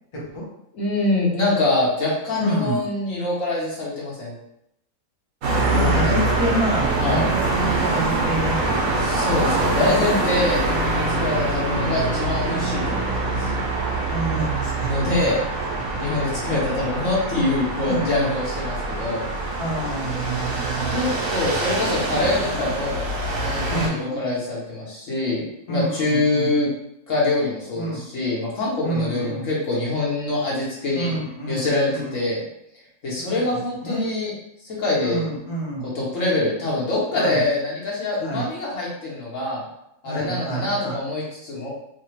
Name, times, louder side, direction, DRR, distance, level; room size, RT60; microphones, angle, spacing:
voice 1, 0.1-0.4 2.4-2.8 5.6-8.8 14.1-14.9 15.9-16.1 16.4-16.5 17.9-18.3 19.6-21.3 22.4-22.7 23.7-24.3 25.7-26.5 27.7-28.0 28.8-29.5 31.0-32.2 33.3-33.4 33.8-34.1 35.0-35.9 37.1-37.4 38.2-38.5 40.0-41.0, right 1 dB, 25° left, -6 dB, 0.8 m, -28 dB
voice 2, 0.7-4.4 5.7-6.4 7.0-7.3 9.0-13.5 14.9-15.4 16.0-19.3 20.9-23.1 23.4-26.7 27.1-31.1 31.5-32.4 33.0-34.3 34.6-35.2 35.9-39.6 40.0-41.7, left 2 dB, 70° left, -5 dB, 1.3 m, -24 dB
sound 1, 5.4-23.9, right 2 dB, 90° right, 1.2 m, -24 dB
3.2 x 2.1 x 3.1 m, 0.78 s
omnidirectional pair, 1.4 m